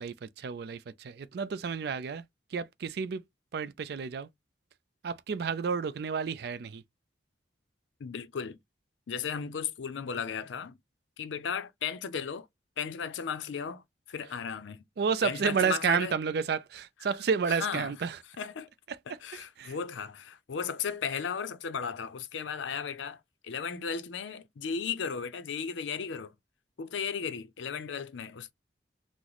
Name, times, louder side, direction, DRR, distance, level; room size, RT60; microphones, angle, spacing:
voice 1, 0.0-2.2 2.5-3.2 3.5-4.3 5.0-6.8 15.0-18.2 18.9-19.0 19.3-19.8, right 6 dB, 60° right, 0.3 m, -31 dB
voice 2, 8.0-8.6 9.1-10.8 11.2-12.5 12.8-13.8 14.1-14.8 15.2-16.2 17.6-17.9 18.4-18.7 19.1-26.3 26.8-28.5, left 6 dB, 85° left, 0.5 m, -35 dB
3.9 x 2.0 x 3.0 m
head